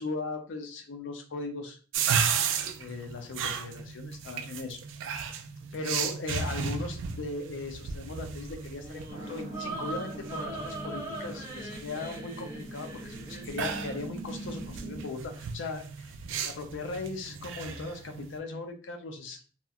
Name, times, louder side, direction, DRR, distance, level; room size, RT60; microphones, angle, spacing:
voice 1, 0.0-1.8 2.8-4.8 5.7-16.1 16.4-19.6, left 3 dB, 65° left, 4 dB, 0.5 m, -38 dB
sound 1, 1.9-18.4, right 6 dB, 70° right, 0.3 m, -35 dB
sound 2, 8.8-14.0, right 2 dB, 15° right, 0.6 m, -41 dB
sound 3, 9.1-15.1, right 1 dB, 25° left, 0.7 m, -43 dB
2.8 x 2.2 x 2.4 m, 0.37 s
head